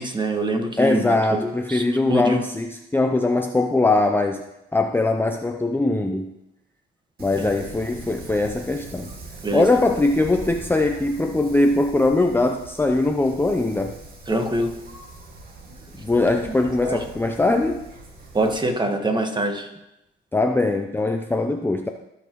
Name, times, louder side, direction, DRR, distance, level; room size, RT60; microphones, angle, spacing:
voice 1, 0.0-1.8 2.1-2.4 7.4-7.5 9.4-9.7 14.3-14.8 16.8-17.0 18.3-19.7, right 1 dB, 20° right, 4 dB, 1.5 m, -24 dB
voice 2, 0.8-4.4 4.7-6.3 7.2-9.1 9.5-14.0 16.0-17.9 20.3-21.9, left 2 dB, 10° left, 4 dB, 0.6 m, -21 dB
Wind, 7.2-18.6, right 2 dB, 50° right, 2.1 m, -42 dB
16.5 x 5.8 x 3.1 m, 0.88 s
cardioid pair, 90°, 20 cm